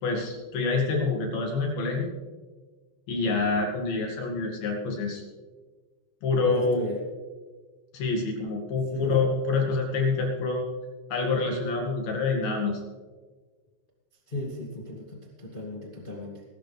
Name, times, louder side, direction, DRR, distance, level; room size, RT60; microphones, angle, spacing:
voice 1, 0.0-2.1 3.1-5.2 6.2-6.9 7.9-10.6 11.1-12.8, left 3 dB, 60° left, 0 dB, 3.7 m, -27 dB
voice 2, 6.4-7.0 8.9-9.1 14.3-16.4, left 1 dB, 90° left, -1 dB, 0.4 m, -36 dB
21.5 x 12.0 x 3.4 m, 1.4 s
omnidirectional pair, 5.2 m